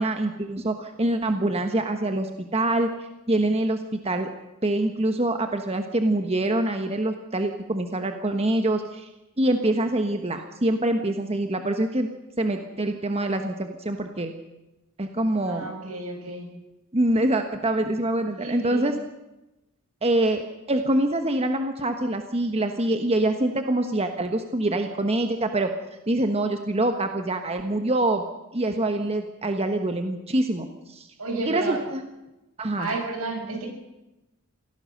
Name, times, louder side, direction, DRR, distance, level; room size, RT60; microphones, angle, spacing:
voice 1, 0.0-2.9 3.3-4.3 4.6-9.1 9.4-12.1 12.4-14.3 15.0-15.7 16.9-18.9 20.0-20.4 20.7-25.7 26.1-28.2 28.5-31.1 31.5-32.0 32.6-32.9, right 1 dB, 30° right, 6 dB, 1.3 m, -25 dB
voice 2, 15.5-16.5 18.4-18.9 31.2-31.8 32.8-33.7, right 3 dB, 80° right, 2 dB, 7.3 m, -31 dB
25.5 x 17.0 x 6.7 m, 0.98 s
head